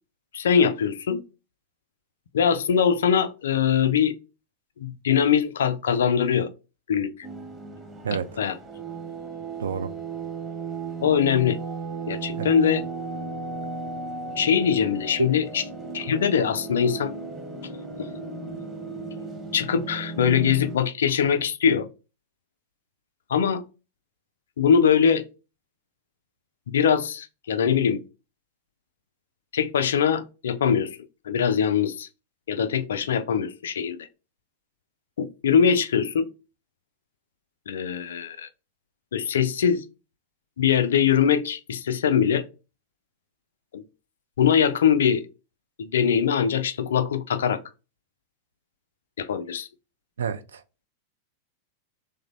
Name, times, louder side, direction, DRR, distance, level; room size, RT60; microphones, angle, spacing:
voice 1, 0.3-1.2 2.3-4.2 4.8-6.5 6.9-7.1 8.4-8.6 11.0-11.6 12.1-12.8 14.4-15.6 15.9-17.1 18.0-18.1 19.5-21.9 23.3-23.6 24.6-25.2 26.7-28.0 29.5-31.0 31.3-32.1 32.5-34.0 35.2-36.3 37.7-38.5 39.1-39.8 40.6-42.4 43.7-43.8 44.4-45.2 45.8-47.6 49.2-49.7, left 7 dB, 65° left, 0.3 m, -22 dB
sound 1, 7.2-20.8, right 4 dB, 15° right, 0.8 m, -35 dB
voice 2, 8.0-8.4 9.6-9.9 12.3-12.5 15.2-15.3 50.2-50.6, right 6 dB, 65° right, 0.3 m, -29 dB
3.2 x 2.0 x 3.7 m
figure-of-eight pair, 90°, 0 cm